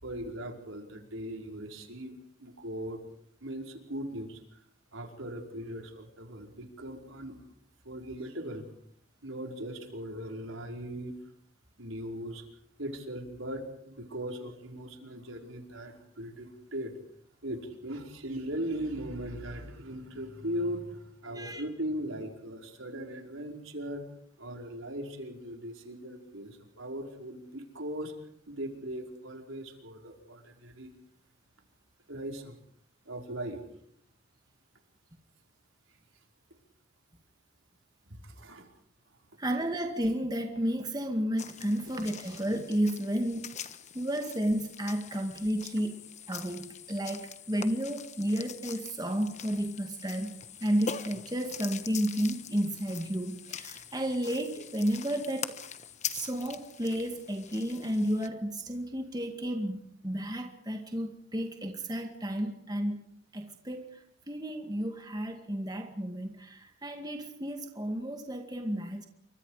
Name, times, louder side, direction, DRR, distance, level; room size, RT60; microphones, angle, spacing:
voice 1, 0.0-3.0 3.4-4.4 4.9-7.4 7.8-8.6 9.2-11.1 11.8-12.4 12.8-16.9 17.4-24.0 24.4-28.1 28.5-30.9 32.1-32.6 33.0-33.6 38.2-38.7 39.1-39.2, right 1 dB, 80° right, 3 dB, 5.1 m, -39 dB
voice 2, 39.4-43.5 43.9-55.6 56.1-63.0 63.3-69.1, equal, 20° right, 4 dB, 2.0 m, -32 dB
sound 1, 41.4-58.3, left 7 dB, 35° left, 1.3 m, -43 dB
29.0 x 25.0 x 5.0 m, 0.67 s
head